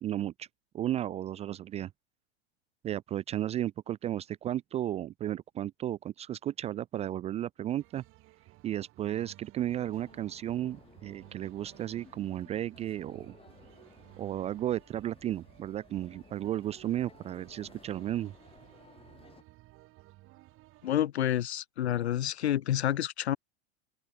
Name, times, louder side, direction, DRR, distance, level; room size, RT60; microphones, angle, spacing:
voice 1, 0.0-0.5 0.7-1.9 2.8-8.0 8.6-13.4 14.2-18.3, right 12 dB, 20° right, 0.4 m, -34 dB
sound 1, 7.8-21.0, right 19 dB, 40° right, 3.1 m, -57 dB
sound 2, 9.7-19.4, left 5 dB, 15° left, 4.7 m, -58 dB
voice 2, 20.8-23.4, left 11 dB, 75° left, 1.1 m, -29 dB
hypercardioid pair, 100°, 33 cm